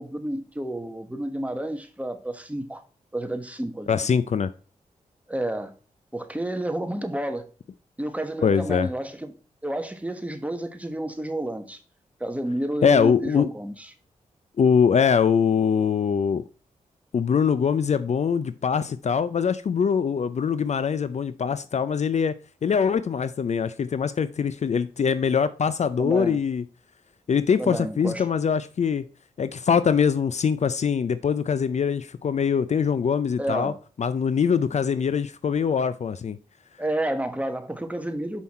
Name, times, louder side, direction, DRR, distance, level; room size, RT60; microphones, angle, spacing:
voice 1, 0.0-2.8 3.1-4.0 5.3-5.7 6.1-7.5 8.0-9.3 9.6-11.8 12.2-13.9 26.0-26.4 27.6-28.3 33.4-33.8 36.8-38.4, right 1 dB, 10° right, 1.3 m, -30 dB
voice 2, 3.9-4.5 8.4-8.9 12.8-13.5 14.6-16.4 17.1-22.3 22.6-26.6 27.3-29.0 29.4-33.7 34.0-36.4, left 6 dB, 55° left, 0.5 m, -23 dB
6.3 x 5.6 x 4.2 m
cardioid pair, 55°, 14 cm